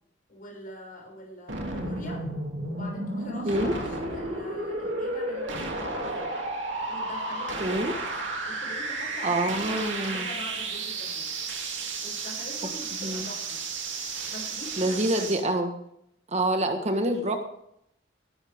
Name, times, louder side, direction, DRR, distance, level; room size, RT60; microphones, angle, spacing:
voice 1, 0.3-2.2 2.7-6.3 6.9-7.8 8.5-11.3 12.0-13.6 14.3-15.2 16.3-16.6, left 1 dB, 50° left, -1 dB, 6.8 m, -43 dB
sound 1, 1.5-15.4, right 2 dB, 90° right, 2.8 m, -33 dB
voice 2, 7.6-7.9 9.2-10.3 13.0-13.3 14.8-15.8 16.3-17.4, right 1 dB, 35° right, 5 dB, 1.5 m, -26 dB
19.0 x 12.0 x 3.7 m, 0.75 s
head